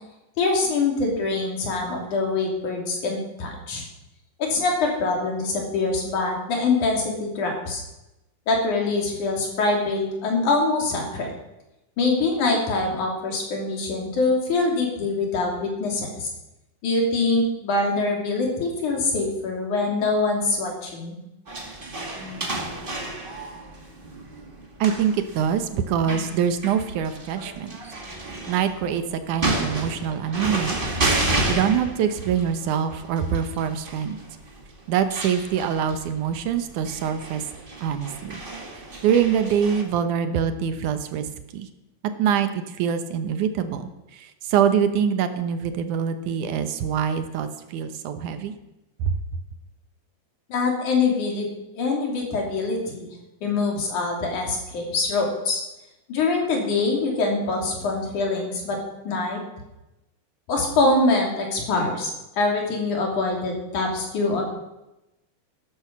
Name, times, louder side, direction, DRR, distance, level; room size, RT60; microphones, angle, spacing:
voice 1, 0.4-3.8 4.4-7.8 8.5-11.3 12.0-16.3 16.8-21.2 50.5-51.5 51.7-53.1 53.4-55.6 56.1-58.8 59.0-59.4 60.5-64.4, left 3 dB, 70° left, 1 dB, 4.3 m, -24 dB
sound 1, 21.5-39.8, right 2 dB, 20° right, 1.6 m, -31 dB
voice 2, 24.8-27.8 28.2-30.7 31.5-34.2 34.9-37.4 37.8-38.4 39.0-41.3 41.5-41.7 42.2-48.5 49.0-49.2, right 8 dB, 75° right, 9 dB, 2.4 m, -24 dB
13.0 x 12.5 x 6.1 m, 0.95 s
omnidirectional pair, 3.7 m